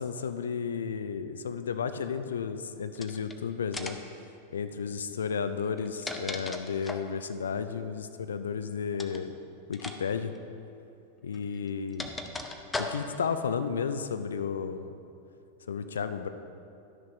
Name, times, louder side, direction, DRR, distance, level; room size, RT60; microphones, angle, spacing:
voice 1, 0.0-4.0 4.5-9.3 9.7-10.3 11.2-12.1 12.8-15.0 15.7-16.3, left 6 dB, 65° left, 10 dB, 0.5 m, -33 dB
sound 1, 2.9-3.3 3.7-4.1 5.6-7.1 8.9-9.2 9.7-10.0 10.2-10.4 11.3-13.3, left 2 dB, 10° left, 0.7 m, -37 dB
12.0 x 6.6 x 5.2 m, 2.6 s
figure-of-eight pair, 90°, 0 cm